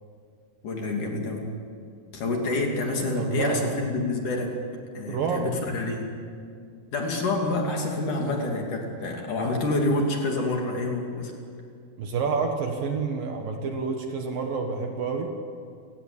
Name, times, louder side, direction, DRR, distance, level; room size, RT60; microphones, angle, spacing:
voice 1, 0.6-1.5 2.1-4.6 4.9-6.1 6.9-11.3, left 2 dB, 50° left, 1 dB, 3.9 m, -27 dB
voice 2, 3.2-3.8 5.0-5.5 12.0-15.3, right 5 dB, 60° right, 3 dB, 2.8 m, -28 dB
29.0 x 17.5 x 8.7 m, 2.3 s
omnidirectional pair, 5.1 m